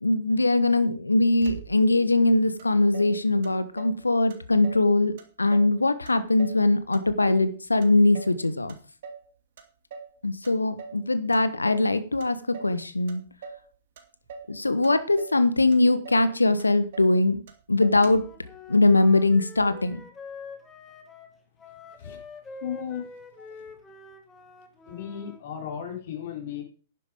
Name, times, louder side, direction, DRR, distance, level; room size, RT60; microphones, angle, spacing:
voice 1, 0.0-5.1 5.4-8.7 10.2-13.2 14.5-17.4 17.7-18.2 18.7-20.0, left 2 dB, 80° left, 13 dB, 1.3 m, -21 dB
Motor vehicle (road), 1.4-2.1 2.6-2.7 2.9-4.0 4.3-4.9 5.2-5.8 6.1-7.5 7.8-8.4 8.7-9.3 9.6-10.2 10.4-11.0 11.3-11.9 12.2-12.8 13.1-13.7 14.0-14.5 14.8-15.4 15.7-15.8 16.0-16.3 16.6-17.2 17.5-17.6 17.8-18.4, right 5 dB, 50° right, 2.3 m, -43 dB
Wind instrument woodwind instrument, 18.0-25.4, left 3 dB, 10° left, 2.1 m, -45 dB
voice 2, 22.6-23.1 24.9-26.6, left 9 dB, 50° left, 3 dB, 4.2 m, -35 dB
11.5 x 10.0 x 5.1 m, 0.37 s
figure-of-eight pair, 110°, 0 cm